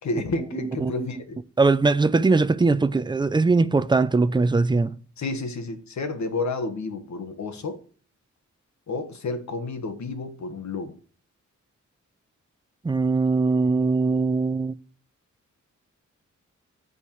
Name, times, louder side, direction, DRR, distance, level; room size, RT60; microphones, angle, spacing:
voice 1, 0.0-1.4 5.2-7.8 8.9-10.9, left 3 dB, 65° left, 1.5 m, -30 dB
voice 2, 0.6-1.1 1.6-5.0 12.8-14.8, right 3 dB, 15° right, 0.4 m, -21 dB
9.4 x 8.8 x 3.1 m
wide cardioid pair, 140°, 30 cm